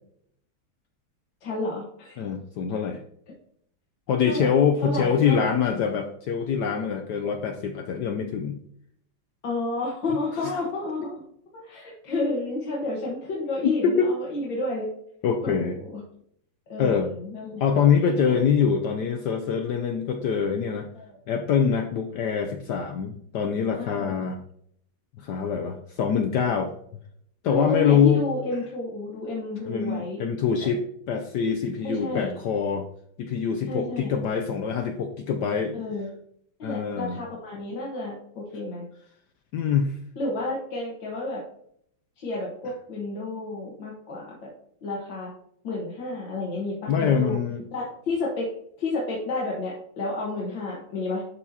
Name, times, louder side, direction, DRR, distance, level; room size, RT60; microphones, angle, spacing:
voice 1, 1.4-2.2 4.2-4.5 4.8-5.9 9.4-11.3 11.5-14.9 15.4-16.0 16.7-17.6 18.1-18.4 19.2-19.3 20.9-21.2 23.8-24.1 27.5-30.2 31.8-32.3 33.7-34.1 35.7-36.1 36.6-38.8 40.2-41.4 42.2-44.5 44.8-45.3 45.6-47.4 47.7-48.5 48.8-51.2, left 2 dB, 60° left, -4 dB, 2.0 m, -31 dB
voice 2, 2.2-3.0 4.1-8.6 13.6-14.1 15.2-15.8 16.8-17.1 17.6-20.9 21.3-24.4 25.2-26.7 27.4-28.2 29.7-32.9 33.2-35.8 36.6-37.2 39.5-40.0 46.9-47.6, left 7 dB, 75° left, 5 dB, 0.9 m, -24 dB
11.5 x 4.2 x 2.8 m, 0.68 s
omnidirectional pair, 2.4 m